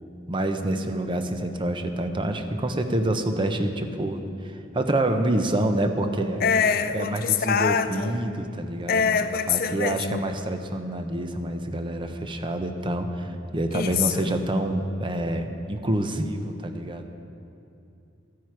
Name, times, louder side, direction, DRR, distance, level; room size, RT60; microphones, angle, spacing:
voice 1, 0.3-6.5 6.9-9.1 9.5-17.1, right 1 dB, 25° right, 0.7 m, -27 dB
voice 2, 6.4-8.1 8.9-10.2 13.7-14.3, left 6 dB, 50° left, 0.4 m, -24 dB
13.5 x 9.3 x 4.7 m
head